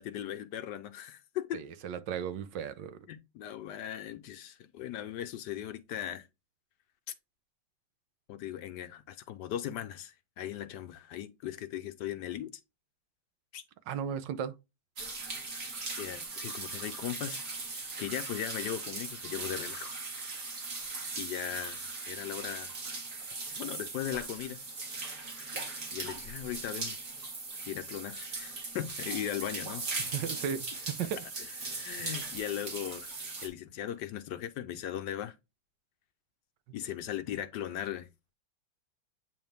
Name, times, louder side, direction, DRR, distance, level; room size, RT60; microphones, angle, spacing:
voice 1, 0.0-1.6 3.1-6.3 8.3-12.5 13.5-13.6 16.0-17.5 18.0-20.0 21.2-22.7 23.6-24.6 25.9-27.0 27.7-29.8 31.0-31.1 31.4-35.3 36.7-38.1, left 11 dB, 70° left, 1.2 m, -38 dB
voice 2, 1.5-3.0 13.9-14.5 30.1-31.2, right 8 dB, 75° right, 1.4 m, -35 dB
sound 1, 15.0-33.5, right 3 dB, 50° right, 2.2 m, -39 dB
8.7 x 3.4 x 3.4 m
omnidirectional pair, 2.0 m